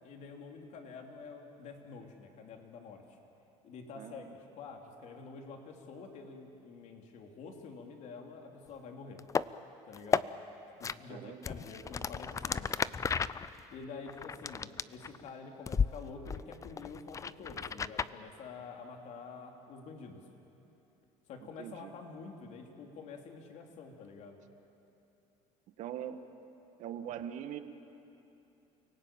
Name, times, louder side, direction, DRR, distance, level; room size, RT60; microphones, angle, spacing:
voice 1, 0.0-3.2 3.6-9.2 9.8-10.3 10.8-12.8 13.7-20.2 21.3-24.4, left 4 dB, 55° left, 2 dB, 3.3 m, -48 dB
voice 2, 3.9-4.3 11.1-11.4 21.6-21.9 25.8-26.2 26.8-27.6, right 10 dB, 55° right, 8 dB, 1.7 m, -41 dB
sound 1, 9.2-9.5 9.9-10.2 10.8-11.0 11.4-15.3 15.7-15.9 16.3-18.1, left 6 dB, 20° left, 0.5 m, -33 dB
30.0 x 18.5 x 9.0 m, 2.9 s
cardioid pair, 115°, 14 cm